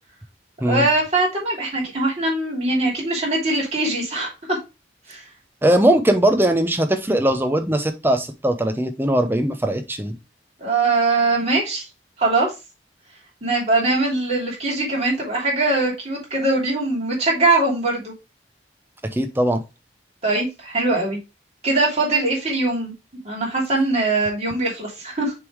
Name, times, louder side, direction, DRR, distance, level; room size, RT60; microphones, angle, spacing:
voice 1, 0.6-4.6 5.1-5.2 10.6-11.9 12.2-12.5 13.4-18.1 20.2-21.2 21.6-22.9 23.2-25.3, right 2 dB, 35° right, -3 dB, 2.9 m, -21 dB
voice 2, 5.6-10.1 19.1-19.6, right 1 dB, 10° right, 6 dB, 0.7 m, -20 dB
6.7 x 3.6 x 4.6 m, 0.26 s
head